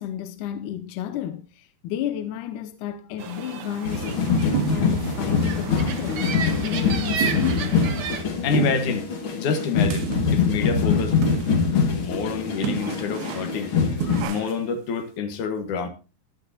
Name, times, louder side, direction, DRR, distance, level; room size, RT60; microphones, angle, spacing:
voice 1, 0.0-4.1 4.4-6.4 6.6-7.9, left 11 dB, 75° left, 1.9 m, -32 dB
sound 1, 3.2-8.2, right 6 dB, 65° right, 1.4 m, -33 dB
sound 2, 3.9-14.2, left 5 dB, 40° left, 2.3 m, -24 dB
sound 3, 4.5-5.1 5.5-5.6 5.9-6.1 6.5-6.6 7.2-7.8 8.5-9.0 9.8-10.4 11.2-11.7 12.0-12.1 12.6-13.6 14.0-14.7, right 10 dB, 85° right, 2.9 m, -30 dB
voice 2, 8.4-9.1 9.3-11.1 11.9-13.7 14.3-15.9, left 6 dB, 60° left, 2.6 m, -27 dB
15.0 x 11.0 x 2.8 m
omnidirectional pair, 4.3 m